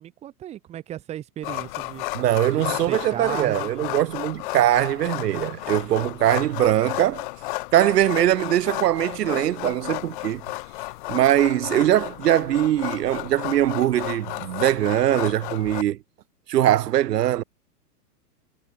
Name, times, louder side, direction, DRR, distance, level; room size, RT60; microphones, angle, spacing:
voice 1, 0.0-2.0 2.5-3.9, right 12 dB, 15° right, 2.3 m, -35 dB
sound 1, 1.4-15.8, left 21 dB, 30° left, 2.1 m, -33 dB
voice 2, 2.1-7.2 7.7-10.4 11.1-16.0 16.5-17.4, right 12 dB, 80° right, 0.9 m, -21 dB
hypercardioid pair, 170°, 47 cm